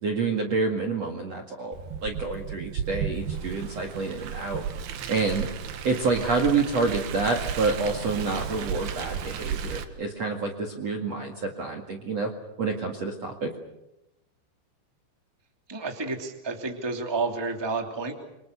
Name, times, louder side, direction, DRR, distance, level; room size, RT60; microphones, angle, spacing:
voice 1, 0.0-1.7 2.0-4.6 5.1-5.5 5.8-12.3 12.6-13.5, right 4 dB, 45° right, 2 dB, 2.5 m, -28 dB
Car, 1.7-9.8, right 7 dB, 65° right, 3.4 m, -34 dB
voice 2, 15.7-18.1, right 3 dB, 5° right, 3 dB, 2.1 m, -30 dB
29.0 x 25.0 x 6.8 m, 0.89 s
omnidirectional pair, 5.2 m